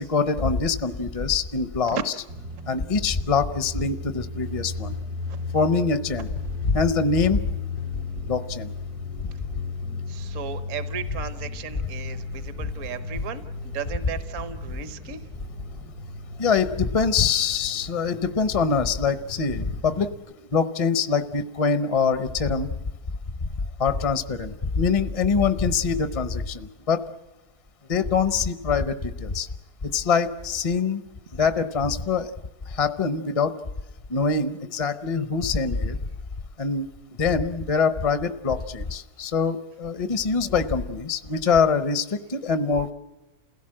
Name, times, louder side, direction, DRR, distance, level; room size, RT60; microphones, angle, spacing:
voice 1, 0.0-2.1 2.7-5.0 5.5-6.3 6.6-7.5 8.3-8.7 16.4-20.1 20.5-22.7 23.4-23.5 23.8-27.1 27.9-29.5 29.8-31.0 31.3-32.3 32.7-33.5 34.1-36.0 36.6-36.9 37.2-42.9, left 5 dB, 35° left, 13 dB, 0.6 m, -24 dB
sound 1, 2.3-20.1, left 4 dB, 85° right, 2.3 m, -35 dB
voice 2, 10.1-15.2, right 7 dB, 60° right, 12 dB, 1.3 m, -35 dB
28.5 x 17.0 x 7.6 m, 1.1 s
omnidirectional pair, 1.6 m